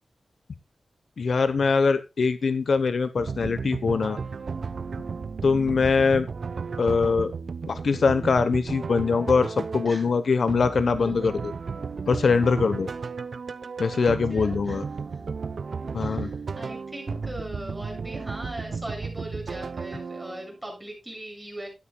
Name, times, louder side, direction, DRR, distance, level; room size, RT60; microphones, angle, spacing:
voice 1, 1.2-4.2 5.4-6.3 6.8-7.3 7.7-11.5 12.1-12.9 13.8-14.8 15.9-16.3, left 5 dB, 70° left, 12 dB, 1.0 m, -23 dB
sound 1, 3.2-20.5, right 5 dB, 65° right, 0.7 m, -34 dB
voice 2, 14.0-14.9 16.0-21.7, right 1 dB, 10° right, 0 dB, 7.6 m, -39 dB
13.0 x 12.0 x 2.3 m, 0.26 s
wide cardioid pair, 90°, 0 cm